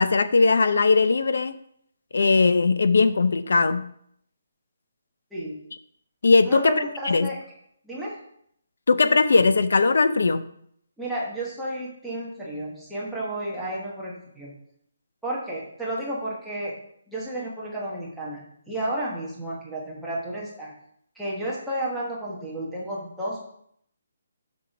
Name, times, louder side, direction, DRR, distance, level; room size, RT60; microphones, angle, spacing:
voice 1, 0.0-1.6 2.1-3.8 6.2-7.3 8.9-10.4, left 4 dB, 60° left, 12 dB, 0.6 m, -19 dB
voice 2, 6.5-7.4 7.8-8.2 11.0-14.5 15.2-16.7 17.1-20.7 21.1-23.4, right 1 dB, ahead, -8 dB, 1.1 m, -32 dB
7.4 x 5.6 x 5.1 m, 0.69 s
hypercardioid pair, 180°, 0 cm